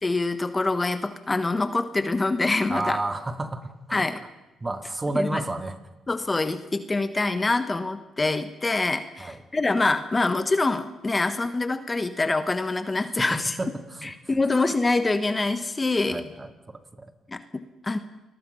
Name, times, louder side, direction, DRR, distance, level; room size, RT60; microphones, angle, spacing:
voice 1, 0.0-3.0 3.9-4.2 5.1-5.4 6.1-13.5 14.0-16.2 17.3-18.0, left 3 dB, 20° left, 10 dB, 1.4 m, -25 dB
voice 2, 2.7-4.0 4.6-5.8 9.2-9.4 13.2-14.1 16.1-17.1, right 2 dB, 20° right, 7 dB, 2.3 m, -31 dB
29.0 x 21.0 x 5.7 m, 0.99 s
cardioid pair, 90°, 0 cm